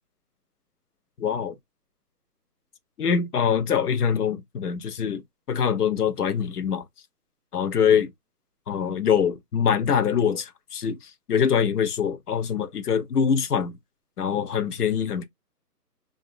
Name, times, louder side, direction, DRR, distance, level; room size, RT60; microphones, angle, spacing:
voice 1, 1.2-1.6 3.0-5.2 5.5-6.8 7.5-8.1 8.7-11.0 11.3-13.7 14.2-15.2, left 7 dB, 65° left, 0.8 m, -24 dB
2.5 x 2.0 x 2.6 m
hypercardioid pair, 160°, 49 cm